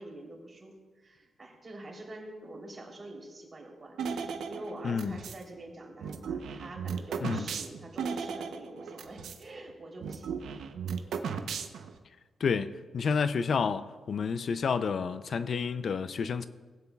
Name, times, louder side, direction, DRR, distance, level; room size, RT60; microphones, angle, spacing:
voice 1, 0.0-10.4, right 2 dB, 35° right, 3.2 m, -46 dB
sound 1, 4.0-5.4 6.0-9.4 9.7-9.8 10.0-12.0, right 6 dB, 85° right, 0.7 m, -36 dB
voice 2, 4.8-5.2 7.2-7.5 12.4-16.5, left 5 dB, 60° left, 0.4 m, -30 dB
19.0 x 9.2 x 2.3 m
cardioid pair, 80°, 0 cm